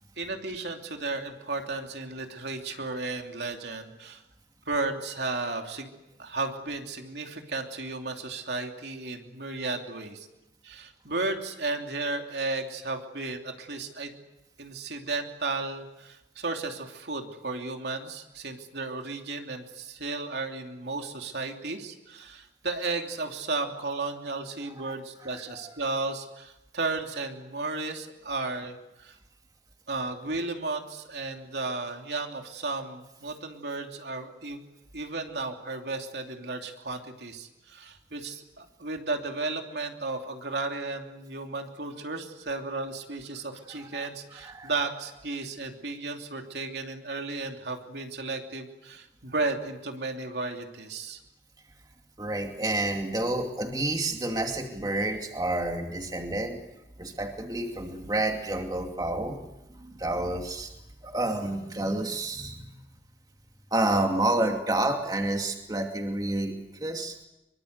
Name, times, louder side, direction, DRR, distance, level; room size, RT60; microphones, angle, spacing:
voice 1, 0.2-4.2 4.7-5.9 6.2-10.3 10.6-14.1 14.6-29.2 29.9-34.6 34.9-51.2, right 3 dB, 75° right, 3 dB, 2.9 m, -34 dB
voice 2, 25.2-25.8 43.4-43.5 43.8-44.1 44.4-44.7 52.2-56.6 57.0-59.4 59.7-60.7 61.0-62.8 63.7-67.1, right 2 dB, 20° right, 3 dB, 2.5 m, -29 dB
24.5 x 24.0 x 8.1 m, 0.95 s
head